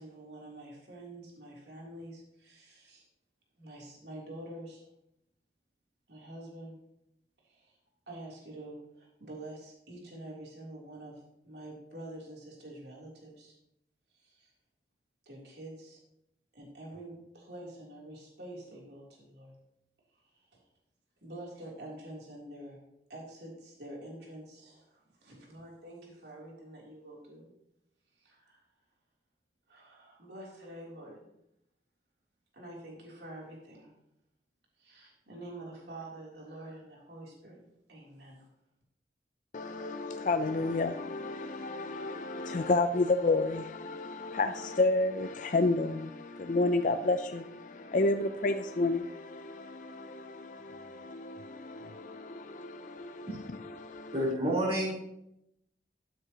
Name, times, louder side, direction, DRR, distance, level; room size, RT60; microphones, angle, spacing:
voice 1, 0.0-3.1 3.6-4.9 6.1-6.8 7.4-7.8 8.1-13.6 14.1-14.5 15.2-16.0 16.5-19.6 20.3-20.6 21.2-22.8 23.1-27.5 28.2-28.6 29.7-31.2 32.5-33.9 34.8-37.6 37.9-38.5, right 1 dB, 70° right, 3.3 m, -47 dB
voice 2, 39.5-54.1, left 2 dB, 45° left, 0.4 m, -31 dB
voice 3, 54.1-54.9, right 1 dB, 35° right, 3.9 m, -29 dB
12.5 x 9.4 x 3.0 m
head